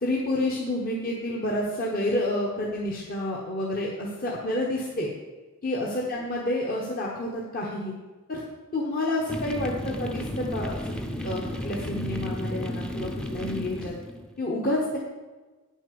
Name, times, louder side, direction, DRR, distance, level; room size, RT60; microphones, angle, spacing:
voice 1, 0.0-5.1 5.6-7.9 8.3-8.4 8.7-10.8 11.2-13.9 14.4-15.0, left 1 dB, 40° left, -3 dB, 1.4 m, -29 dB
sound 1, 9.3-14.3, equal, 5° left, 0.7 m, -33 dB
9.2 x 7.2 x 7.0 m, 1.3 s
head